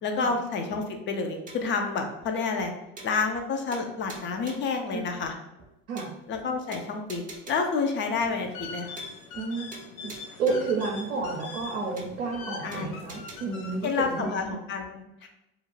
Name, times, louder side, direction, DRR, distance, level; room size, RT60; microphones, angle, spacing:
voice 1, 0.0-2.7 3.0-5.3 6.3-9.0 12.6-12.9 13.8-15.3, left 4 dB, 30° left, 4 dB, 0.4 m, -29 dB
sound 1, 1.5-1.8 2.2-2.3 2.6-2.7 3.0-3.5 3.7-4.8 5.2-5.3 5.6-5.7 6.0-6.4 6.7-7.8 8.2-8.3 8.6-8.7 9.0-9.5 9.7-10.8 11.2-11.3 11.6-11.7 12.0-12.4 12.7-13.4, right 3 dB, 20° right, 0.5 m, -46 dB
sound 2, 8.1-14.4, left 4 dB, 80° left, 0.6 m, -42 dB
voice 2, 9.3-9.7 10.4-14.5, right 4 dB, 85° right, -1 dB, 0.6 m, -31 dB
2.4 x 2.1 x 3.1 m, 0.92 s
hypercardioid pair, 90°, 41 cm